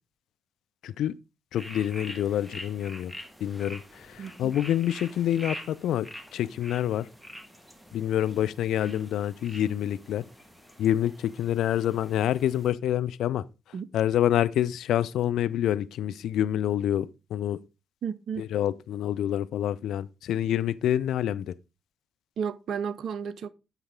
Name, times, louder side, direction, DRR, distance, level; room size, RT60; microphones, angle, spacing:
voice 1, 0.8-1.1 1.5-3.1 3.4-7.1 7.9-10.3 10.8-13.4 13.9-17.6 18.4-21.5, left 11 dB, 65° left, 0.3 m, -27 dB
sound 1, 1.6-12.7, equal, ahead, 1.4 m, -45 dB
voice 2, 4.2-4.6 13.7-13.9 18.0-18.5 22.4-23.5, right 7 dB, 55° right, 0.5 m, -33 dB
8.1 x 5.9 x 3.5 m
figure-of-eight pair, 40°, 0 cm